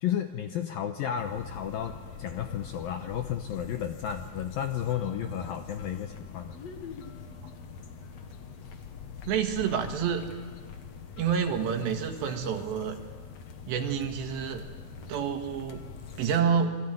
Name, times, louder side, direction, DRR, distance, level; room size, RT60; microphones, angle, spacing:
voice 1, 0.0-6.6, left 9 dB, 75° left, 7 dB, 2.2 m, -32 dB
sound 1, 1.1-16.4, left 6 dB, 55° left, 1.9 m, -44 dB
voice 2, 9.3-10.2 11.2-13.0 13.7-14.7 15.1-15.9 16.2-16.8, right 7 dB, 75° right, 5 dB, 4.0 m, -28 dB
27.0 x 23.0 x 9.3 m, 1.5 s
omnidirectional pair, 5.2 m